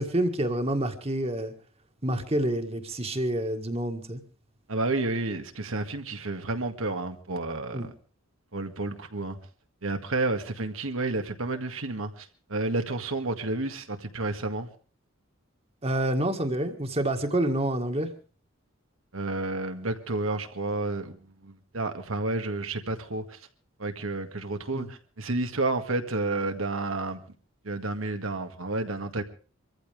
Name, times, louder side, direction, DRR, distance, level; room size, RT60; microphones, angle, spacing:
voice 1, 0.0-1.5 2.0-4.2 7.7-7.9 15.8-18.1 24.7-24.9, right 1 dB, 30° right, 1.8 m, -28 dB
voice 2, 4.7-7.8 8.5-9.4 9.8-14.7 19.1-23.4 23.8-27.2 27.7-29.2, right 2 dB, 80° right, 1.9 m, -30 dB
25.0 x 14.5 x 3.5 m
head